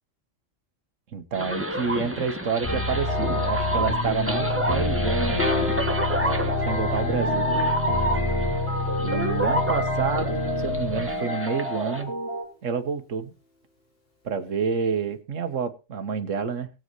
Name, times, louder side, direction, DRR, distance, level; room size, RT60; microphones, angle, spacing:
voice 1, 1.1-5.5 6.2-7.5 9.0-12.1 12.6-13.3 14.2-16.7, right 6 dB, 75° right, 1.5 m, -29 dB
sound 1, 1.3-12.0, right 1 dB, 10° right, 1.3 m, -30 dB
sound 2, 2.6-12.4, left 2 dB, 15° left, 4.6 m, -27 dB
Piano, 5.4-11.8, equal, 60° left, 5.2 m, -36 dB
19.5 x 7.8 x 3.1 m
omnidirectional pair, 1.3 m